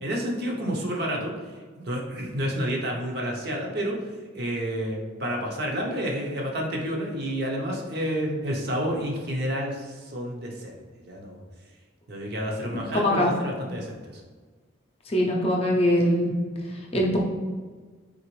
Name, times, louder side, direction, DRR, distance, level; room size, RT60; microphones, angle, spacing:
voice 1, 0.0-1.3 1.8-4.0 4.3-10.7 11.0-11.4 12.1-14.2, equal, 50° right, -1 dB, 0.7 m, -29 dB
voice 2, 15.1-16.3 16.7-17.2, left 1 dB, 30° left, -1 dB, 0.5 m, -22 dB
3.9 x 3.5 x 3.0 m, 1.4 s
head